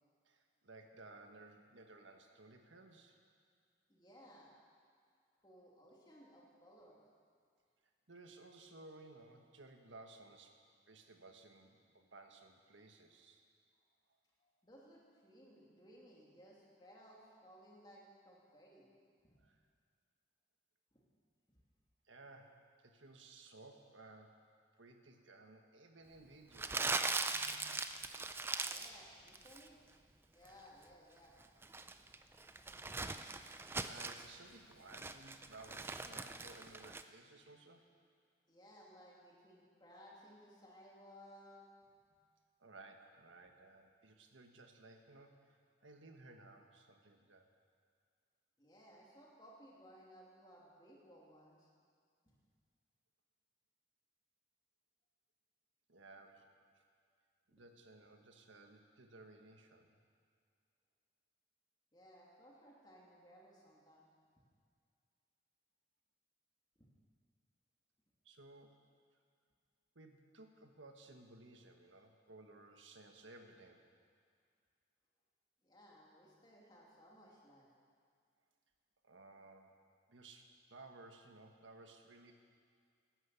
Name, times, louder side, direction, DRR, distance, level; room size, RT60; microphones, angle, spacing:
voice 1, 0.2-3.2 8.1-10.6 10.9-13.5 19.4-19.6 22.0-24.4 24.8-27.0 33.8-37.9 42.6-47.5 55.9-56.5 56.7-56.8 57.5-60.0 68.2-68.8 69.9-73.8 79.0-79.8 80.1-82.3, right 2 dB, 85° right, 4 dB, 1.5 m, -58 dB
voice 2, 3.9-4.5 5.4-7.0 14.4-19.4 20.9-21.0 21.5-21.6 27.3-27.7 28.3-29.8 30.3-31.3 32.3-32.6 38.5-41.6 48.6-51.7 52.2-52.4 61.9-64.1 66.8-66.9 75.6-77.7, equal, 20° left, -4 dB, 2.8 m, -61 dB
Crumpling crinkling, 26.5-29.0 29.3-29.7 31.4-34.3 34.7-37.0, right 3 dB, 10° right, 0.4 m, -40 dB
13.0 x 11.0 x 8.3 m, 2.2 s
head